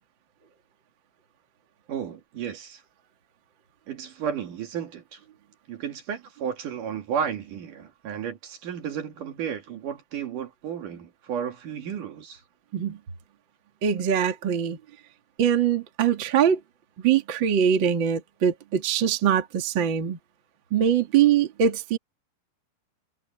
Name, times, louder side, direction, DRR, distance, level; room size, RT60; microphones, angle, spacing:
voice 1, 1.9-2.8 3.9-5.2 5.7-12.4, right 8 dB, 60° right, 3.5 m, -33 dB
voice 2, 13.8-14.8 15.4-16.6 17.0-20.2 20.7-22.0, right 8 dB, 40° right, 2.2 m, -22 dB
omnidirectional pair, 4.3 m